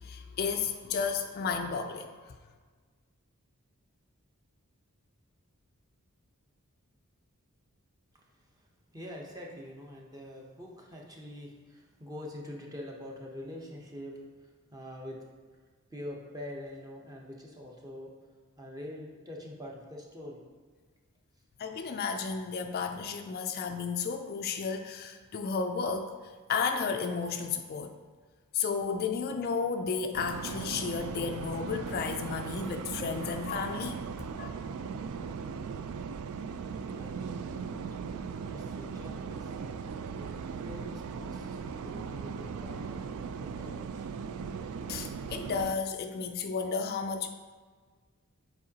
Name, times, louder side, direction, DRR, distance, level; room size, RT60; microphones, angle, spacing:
voice 1, 0.0-2.4 21.6-27.9 28.5-34.0 34.4-34.5 44.9-47.3, left 5 dB, 45° left, 6 dB, 0.3 m, -33 dB
voice 2, 8.1-8.7 8.9-15.2 15.9-18.1 18.6-20.4 36.8-39.5 40.1-44.1, left 1 dB, 15° right, -1 dB, 0.8 m, -45 dB
sound 1, 30.1-45.7, right 5 dB, 70° right, 0.3 m, -38 dB
7.5 x 4.6 x 2.8 m, 1.5 s
head